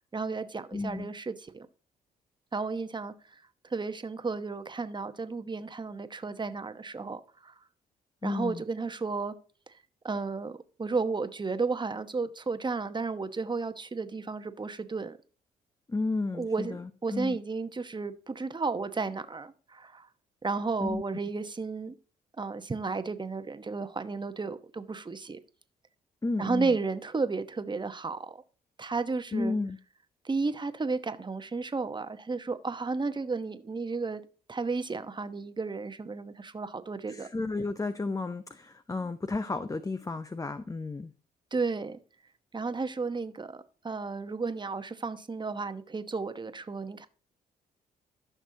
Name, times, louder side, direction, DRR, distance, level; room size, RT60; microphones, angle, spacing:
voice 1, 0.1-1.7 2.5-3.1 3.7-7.5 8.2-9.3 10.0-15.2 16.3-20.1 20.4-21.9 22.4-25.4 26.4-28.4 28.8-29.5 30.2-34.2 34.5-37.3 41.5-42.0 42.5-43.5 43.8-47.1, right 4 dB, 25° right, 1.0 m, -33 dB
voice 2, 0.7-1.1 8.2-8.6 15.9-17.4 20.8-21.0 26.2-26.8 29.3-29.8 37.1-41.1, left 3 dB, 20° left, 0.6 m, -32 dB
14.5 x 6.0 x 2.8 m
hypercardioid pair, 50°, 19 cm